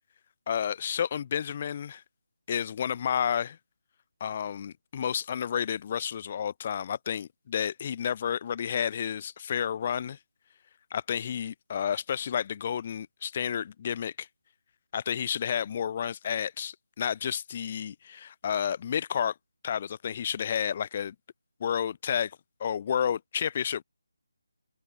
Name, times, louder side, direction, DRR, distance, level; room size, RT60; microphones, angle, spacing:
voice 1, 0.5-2.0 2.5-3.6 4.2-10.2 10.9-14.3 14.9-19.3 19.6-21.2 21.6-23.8, left 8 dB, 35° left, 5.3 m, -31 dB
open air
figure-of-eight pair, 160°, 0 cm